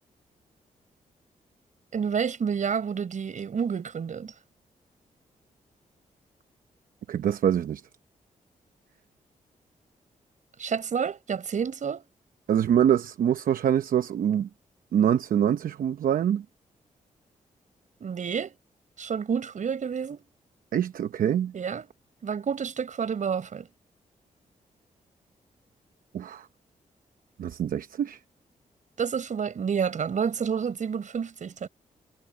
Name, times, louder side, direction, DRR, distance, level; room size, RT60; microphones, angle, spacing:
voice 1, 1.9-4.3 10.6-12.0 18.0-18.6 19.0-20.2 21.5-21.9 22.2-23.7 29.0-31.7, right 6 dB, 60° right, 5.0 m, -29 dB
voice 2, 7.1-7.8 12.5-14.5 14.9-16.4 20.7-21.5 26.1-26.5 27.4-28.2, right 9 dB, 75° right, 0.8 m, -24 dB
cardioid pair, 80°, 14 cm